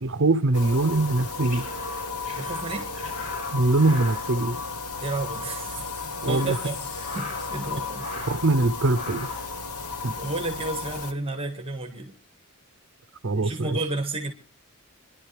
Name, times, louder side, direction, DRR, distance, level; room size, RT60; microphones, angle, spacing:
voice 1, 0.0-1.7 3.5-4.6 6.2-6.6 8.3-9.3 10.0-10.1 13.2-13.8, right 2 dB, 55° right, 0.7 m, -22 dB
sound 1, 0.5-11.1, left 4 dB, 85° left, 1.2 m, -34 dB
sound 2, 1.3-5.2 5.5-5.6 6.1-7.7 7.9-8.5 8.9-9.5, left 2 dB, 40° left, 5.5 m, -40 dB
voice 2, 2.4-2.9 5.0-5.9 6.3-8.1 10.2-12.1 13.3-14.3, right 2 dB, 25° right, 1.6 m, -32 dB
26.5 x 11.0 x 3.3 m
head